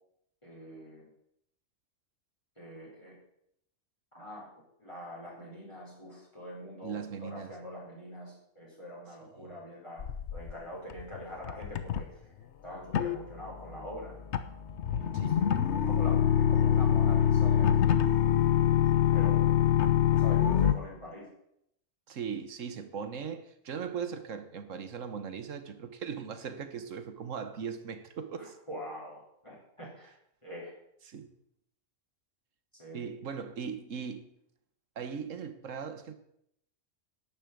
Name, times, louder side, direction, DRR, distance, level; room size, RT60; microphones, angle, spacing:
voice 1, 0.4-1.1 2.6-3.2 4.1-4.5 4.8-10.0 10.3-14.2 14.9-15.5 15.8-18.0 19.1-19.5 20.1-21.3 28.4-30.7 32.7-33.1, equal, 25° left, 4.4 m, -45 dB
voice 2, 6.8-7.5 9.4-9.5 15.1-15.5 22.1-28.6 31.1-31.3 32.9-34.3 35.0-36.1, right 6 dB, 90° right, 1.5 m, -39 dB
sound 1, 10.0-10.5 10.9-11.2 11.4-12.0 12.9-20.7, left 9 dB, 65° left, 1.1 m, -25 dB
11.5 x 7.2 x 8.4 m
omnidirectional pair, 1.3 m